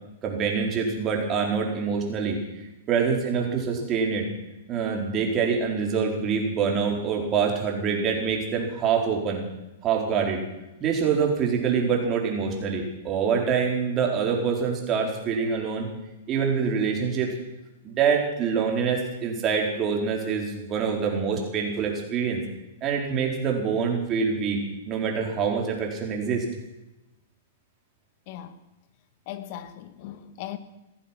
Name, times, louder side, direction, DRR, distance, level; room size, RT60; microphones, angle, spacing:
voice 1, 0.2-2.4 2.9-4.3 4.7-9.4 9.8-10.4 10.8-15.9 16.3-17.3 17.8-22.4 22.8-24.6 24.9-26.4, right 6 dB, 30° right, 4.3 m, -25 dB
voice 2, 28.3-28.6 29.3-30.6, left 12 dB, 50° left, 1.5 m, -38 dB
17.0 x 14.0 x 6.0 m
hypercardioid pair, 115°, 0 cm